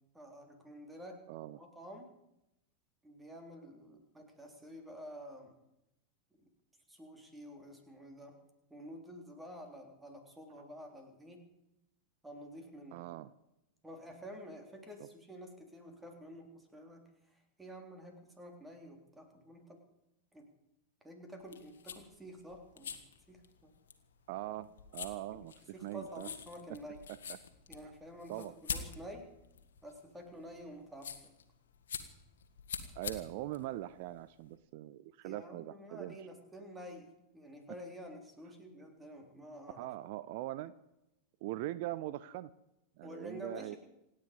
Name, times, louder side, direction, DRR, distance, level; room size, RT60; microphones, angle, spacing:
voice 1, 0.1-1.2 1.6-2.1 3.0-5.5 6.4-6.5 6.9-8.4 8.7-11.4 12.2-13.0 13.8-19.8 20.3-20.5 21.0-23.0 23.3-23.7 25.3-25.4 25.7-27.0 27.7-29.3 29.8-31.3 33.5-33.7 35.2-39.9 43.0-43.8, equal, 10° right, 4 dB, 3.7 m, -50 dB
voice 2, 1.3-1.6 12.9-13.3 15.0-15.1 24.3-25.5 25.8-26.3 27.3-27.4 28.3-28.5 33.0-36.2 39.8-40.7 41.4-42.5 43.0-43.8, right 15 dB, 50° right, 16 dB, 0.6 m, -41 dB
sound 1, 21.4-34.5, left 7 dB, 65° left, 1.9 m, -46 dB
27.5 x 9.9 x 5.3 m, 0.88 s
figure-of-eight pair, 90°, 0 cm